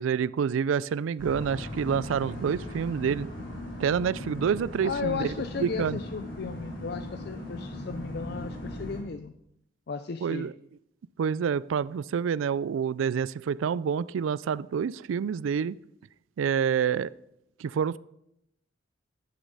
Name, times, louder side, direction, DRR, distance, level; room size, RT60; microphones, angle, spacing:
voice 1, 0.0-3.3 3.8-6.0 10.2-10.5 11.2-15.8 16.4-17.1 17.6-18.0, right 7 dB, 80° right, 20 dB, 0.3 m, -28 dB
sound 1, 1.2-9.0, left 1 dB, 75° left, 4.0 m, -38 dB
voice 2, 4.8-9.3 9.9-10.5, left 5 dB, 55° left, 10 dB, 0.5 m, -35 dB
10.5 x 7.1 x 5.4 m, 0.79 s
head